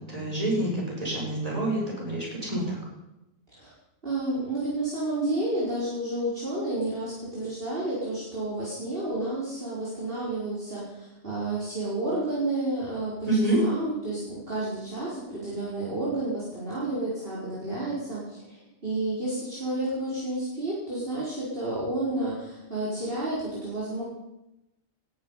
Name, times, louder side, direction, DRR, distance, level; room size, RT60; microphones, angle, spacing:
voice 1, 0.0-2.8 13.3-13.6, right 1 dB, 25° right, -3 dB, 6.9 m, -27 dB
voice 2, 4.0-24.0, right 2 dB, 45° right, -8 dB, 5.2 m, -31 dB
18.5 x 13.5 x 5.8 m, 0.93 s
omnidirectional pair, 1.4 m